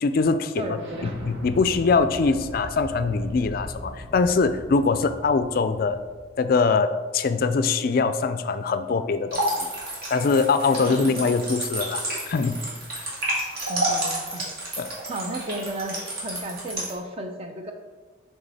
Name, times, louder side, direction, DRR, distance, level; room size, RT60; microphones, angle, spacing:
voice 1, 0.0-0.8 1.0-6.0 6.4-9.7 10.1-12.6 14.8-14.9, left 4 dB, 45° left, 10 dB, 0.3 m, -23 dB
voice 2, 0.6-1.1 10.7-11.5 13.7-14.5 15.1-17.7, right 1 dB, 30° right, 5 dB, 0.6 m, -34 dB
Explosion, 0.8-6.3, equal, 65° right, 1.2 m, -40 dB
sound 1, 9.3-16.9, right 1 dB, 50° right, 1.8 m, -30 dB
7.1 x 3.6 x 4.1 m, 1.4 s
head